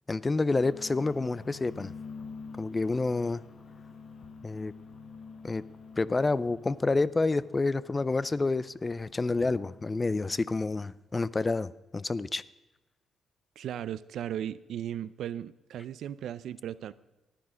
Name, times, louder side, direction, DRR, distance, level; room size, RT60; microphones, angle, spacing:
voice 1, 0.1-1.9 2.6-3.4 4.4-4.7 5.4-5.6 6.0-12.4, left 3 dB, 25° left, 18 dB, 0.4 m, -28 dB
sound 1, 0.5-10.8, left 4 dB, 60° left, 1.5 m, -48 dB
voice 2, 13.6-16.9, right 10 dB, 75° right, 16 dB, 0.4 m, -36 dB
13.5 x 9.5 x 5.1 m, 1.0 s
cardioid pair, 85°, 0 cm